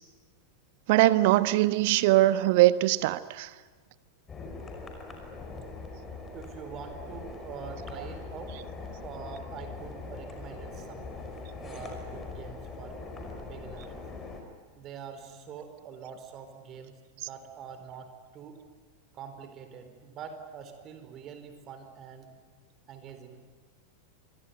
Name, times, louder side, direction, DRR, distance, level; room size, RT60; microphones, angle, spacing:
voice 1, 0.9-3.5, right 16 dB, 50° right, 1.1 m, -22 dB
sound 1, 4.3-14.4, left 3 dB, 20° left, 5.2 m, -41 dB
voice 2, 6.3-8.6 9.0-11.1 11.6-13.0 13.4-13.9 14.7-18.6 19.1-22.3 22.9-23.4, right 7 dB, 35° right, 4.1 m, -44 dB
26.5 x 22.5 x 9.4 m
figure-of-eight pair, 90°, 0 cm